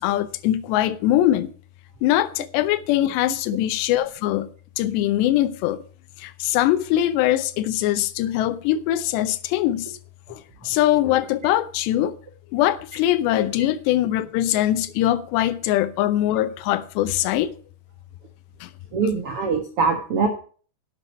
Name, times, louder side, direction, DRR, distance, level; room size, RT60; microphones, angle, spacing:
voice 1, 0.0-1.5 2.0-4.5 4.8-5.8 6.2-10.0 10.3-12.2 12.5-17.5 18.6-18.7, left 13 dB, 80° left, 2.9 m, -22 dB
voice 2, 18.9-20.3, right 5 dB, 70° right, 1.4 m, -22 dB
11.5 x 10.0 x 4.4 m
omnidirectional pair, 5.0 m